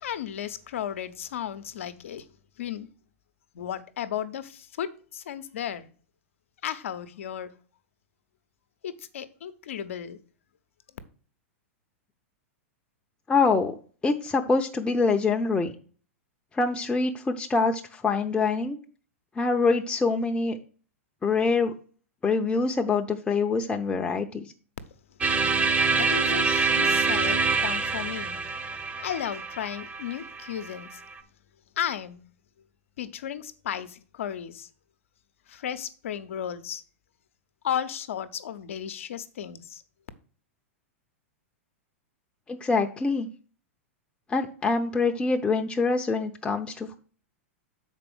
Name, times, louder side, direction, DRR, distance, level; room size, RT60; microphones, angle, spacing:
voice 1, 0.0-2.3 2.6-2.9 3.5-5.9 6.6-7.5 8.8-10.2 25.9-28.5 29.0-31.0 31.8-32.2 33.0-34.7 35.5-36.8 37.6-39.8, left 9 dB, 70° left, 0.8 m, -34 dB
voice 2, 13.3-13.7 14.0-15.7 16.5-18.8 19.4-20.6 21.2-21.7 22.2-24.5 42.5-43.3 44.3-47.0, left 4 dB, 15° left, 0.7 m, -25 dB
sound 1, 25.2-31.1, right 4 dB, 15° right, 0.9 m, -26 dB
6.7 x 4.5 x 6.0 m
hypercardioid pair, 105°, 7 cm